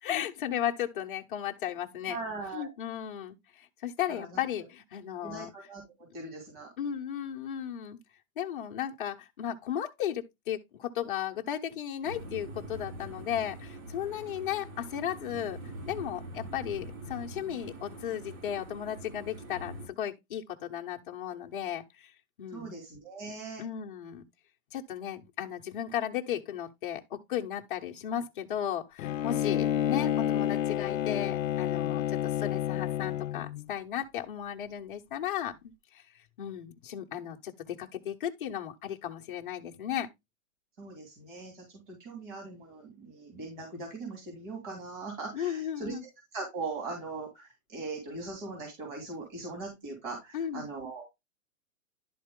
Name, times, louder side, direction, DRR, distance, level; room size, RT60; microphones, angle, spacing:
voice 1, 0.0-2.2 2.5-5.5 6.8-8.0 8.4-15.6 15.9-22.1 22.4-22.8 23.6-24.2 24.7-36.0 36.4-40.1 45.3-46.0 50.3-50.7, left 10 dB, 40° left, 0.9 m, -35 dB
voice 2, 2.1-2.7 4.1-4.4 5.2-6.7 22.5-23.6 40.8-45.9 46.3-51.0, right 3 dB, 35° right, 2.8 m, -40 dB
sound 1, 12.0-19.9, right 1 dB, 85° right, 4.6 m, -44 dB
Bowed string instrument, 29.0-33.7, left 11 dB, 65° left, 0.6 m, -29 dB
11.0 x 4.3 x 3.6 m
hypercardioid pair, 180°, 41 cm